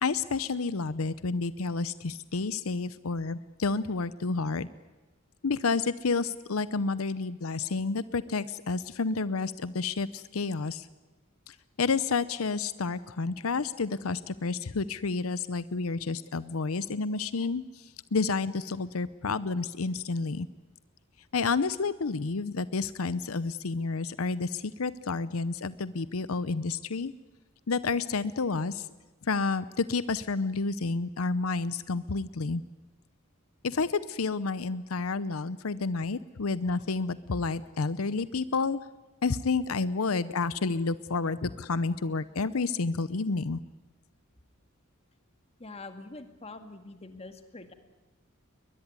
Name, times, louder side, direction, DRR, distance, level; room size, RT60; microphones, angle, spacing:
voice 1, 0.0-4.7 5.4-10.9 11.5-17.8 18.1-20.5 21.3-27.1 27.7-28.9 29.2-32.6 33.6-38.8 39.2-43.6, left 4 dB, 85° left, 16 dB, 0.7 m, -30 dB
voice 2, 45.6-47.7, left 3 dB, 30° left, 8 dB, 2.0 m, -44 dB
22.0 x 21.0 x 9.6 m, 1.2 s
head